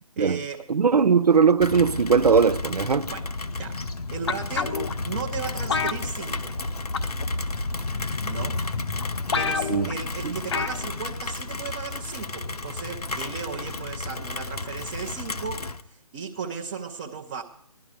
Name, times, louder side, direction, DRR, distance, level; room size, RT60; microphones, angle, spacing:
voice 1, 0.0-0.7 3.1-3.3 3.6-3.8 4.1-6.6 8.2-9.1 9.4-17.4, right 6 dB, 20° right, 0.6 m, -36 dB
voice 2, 0.7-3.1 9.7-9.9, right 5 dB, 85° right, 0.4 m, -19 dB
Rain, 1.6-15.8, left 3 dB, 75° left, 0.9 m, -32 dB
sound 1, 4.3-4.9 5.7-6.7 6.9-7.2 8.1-8.2 8.7-8.8 9.0-9.1 9.3-10.0 10.5-10.8 11.1-11.2, left 5 dB, 45° left, 0.7 m, -27 dB
16.0 x 11.5 x 4.8 m
figure-of-eight pair, 145°, 20 cm